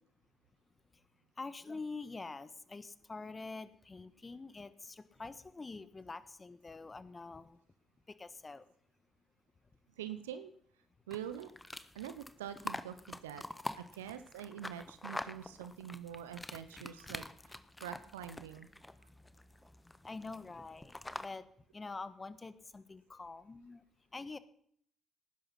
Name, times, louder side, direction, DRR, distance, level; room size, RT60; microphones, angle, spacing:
voice 1, 1.4-7.6 8.2-8.6 20.0-21.4 21.7-23.8 24.1-24.4, left 3 dB, 30° left, 13 dB, 1.4 m, -46 dB
voice 2, 10.0-10.5 11.1-11.5 11.9-13.4 13.7-18.7, right 10 dB, 85° right, 11 dB, 0.7 m, -45 dB
sound 1, 11.1-21.3, left 1 dB, 15° left, 1.3 m, -46 dB
18.5 x 10.5 x 5.7 m, 0.64 s
hypercardioid pair, 40°, 0 cm